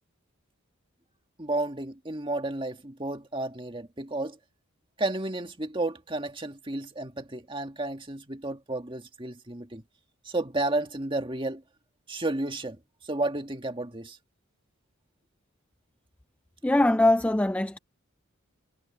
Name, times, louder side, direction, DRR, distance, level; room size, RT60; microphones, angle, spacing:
voice 1, 1.4-4.4 5.0-9.8 10.3-11.6 12.1-12.8 13.0-14.2, right 2 dB, 25° right, 1.8 m, -32 dB
voice 2, 16.6-17.8, left 1 dB, 5° left, 0.3 m, -22 dB
head